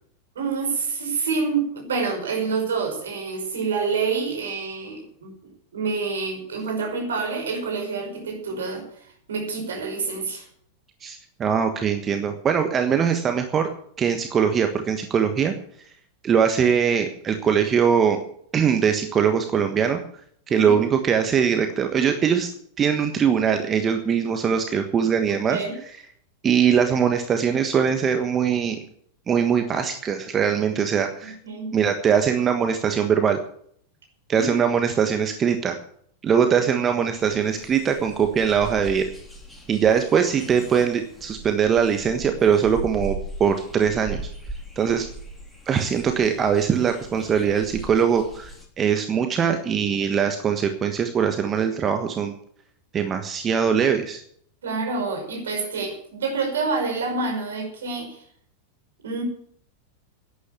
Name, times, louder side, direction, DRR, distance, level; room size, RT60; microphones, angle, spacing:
voice 1, 0.4-10.5 20.5-20.8 25.5-25.8 31.2-31.7 34.3-34.5 54.6-58.2 59.0-59.2, right 4 dB, 65° right, 4 dB, 5.3 m, -27 dB
voice 2, 11.0-13.7 14.0-15.5 16.2-18.2 18.5-20.0 20.5-22.5 22.8-25.6 26.4-28.8 29.3-31.3 31.7-33.4 34.3-35.8 36.2-39.1 39.7-44.2 44.8-45.1 45.7-52.3 52.9-54.2, right 7 dB, 25° right, 6 dB, 1.4 m, -21 dB
sound 1, 37.2-48.7, right 2 dB, 5° left, 3.6 m, -39 dB
11.5 x 10.5 x 8.6 m, 0.64 s
figure-of-eight pair, 90°, 0 cm